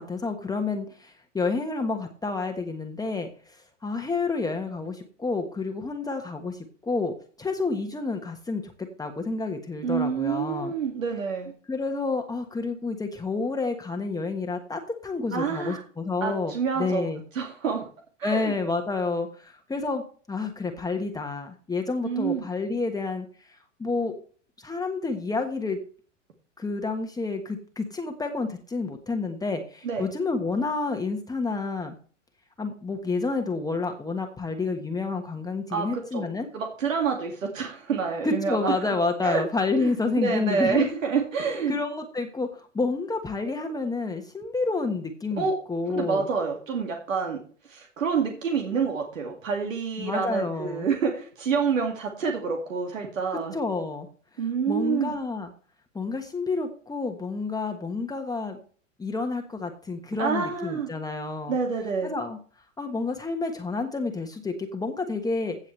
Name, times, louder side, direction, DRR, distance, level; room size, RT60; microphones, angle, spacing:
voice 1, 0.0-8.7 9.0-10.7 11.7-17.2 18.2-24.1 24.6-25.8 26.6-31.9 32.6-36.5 38.2-41.0 41.7-46.3 50.0-50.8 53.5-54.1 54.7-55.5 55.9-58.6 59.0-61.5 62.0-62.4 62.8-65.6, left 3 dB, 10° left, 4 dB, 1.3 m, -29 dB
voice 2, 9.8-11.5 15.3-15.8 16.2-17.0 17.3-17.9 18.2-18.5 22.0-22.5 29.8-30.1 35.7-36.3 36.5-38.9 39.2-39.4 39.8-41.8 45.4-45.6 45.9-47.4 47.7-53.6 54.4-55.2 60.2-60.9 61.5-62.1, right 6 dB, 80° right, 2 dB, 2.3 m, -27 dB
16.0 x 7.3 x 3.3 m, 0.42 s
hypercardioid pair, 105°, 38 cm